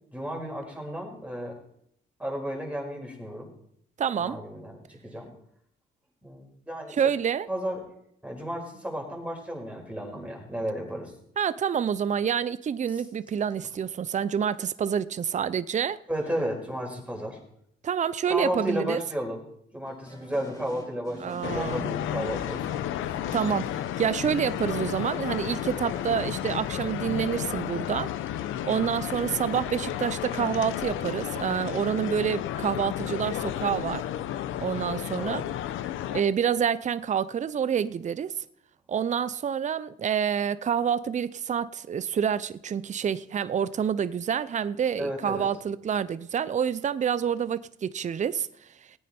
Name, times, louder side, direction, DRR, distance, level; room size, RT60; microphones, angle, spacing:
voice 1, 0.1-1.5 2.2-3.5 4.2-5.3 6.2-7.0 7.5-7.8 8.2-11.1 12.9-13.0 16.1-17.4 18.3-19.4 19.7-22.9 29.5-29.8 35.2-35.4 45.0-45.5, equal, 5° right, 4.8 m, -33 dB
voice 2, 4.0-4.4 6.9-7.5 11.4-16.0 17.8-19.0 21.2-21.9 23.3-28.1 28.6-34.1 34.6-35.4 36.1-38.3 38.9-48.5, right 8 dB, 35° right, 0.6 m, -28 dB
sound 1, 19.8-26.4, left 1 dB, 15° left, 3.6 m, -46 dB
sound 2, 21.4-36.2, left 11 dB, 85° left, 0.8 m, -32 dB
18.5 x 9.3 x 4.4 m
cardioid pair, 90°, 20 cm